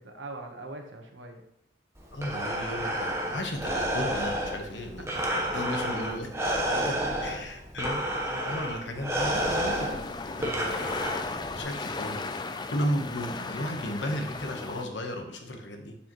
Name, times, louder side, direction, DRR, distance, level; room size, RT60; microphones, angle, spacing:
voice 1, 0.0-1.4 5.1-5.4 6.6-7.2 8.2-8.5, right 2 dB, 85° right, 4 dB, 1.2 m, -43 dB
Breathing, 2.0-11.6, right 1 dB, 15° right, 1.0 m, -31 dB
voice 2, 2.1-5.1 5.4-6.3 6.7-7.0 7.2-8.0 8.4-11.2 11.5-12.4 12.7-15.9, left 1 dB, 75° left, 3 dB, 1.2 m, -34 dB
sound 1, 9.3-14.9, left 3 dB, 25° left, 0.4 m, -36 dB
7.6 x 6.9 x 3.1 m, 0.81 s
head